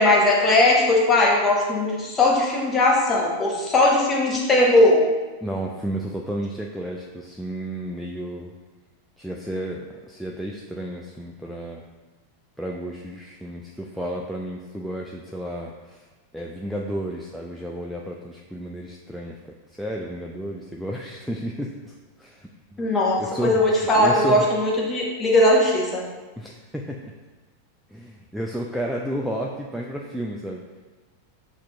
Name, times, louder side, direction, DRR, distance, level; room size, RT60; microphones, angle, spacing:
voice 1, 0.0-5.0 22.8-26.0, left 1 dB, 15° left, -2 dB, 0.8 m, -19 dB
voice 2, 5.4-8.5 9.2-11.8 12.6-16.0 16.3-19.4 19.8-21.9 22.2-23.6 24.0-24.5 26.4-27.1 27.9-30.6, right 1 dB, ahead, -2 dB, 0.3 m, -32 dB
7.1 x 2.5 x 2.2 m, 1.3 s
figure-of-eight pair, 90°, 0 cm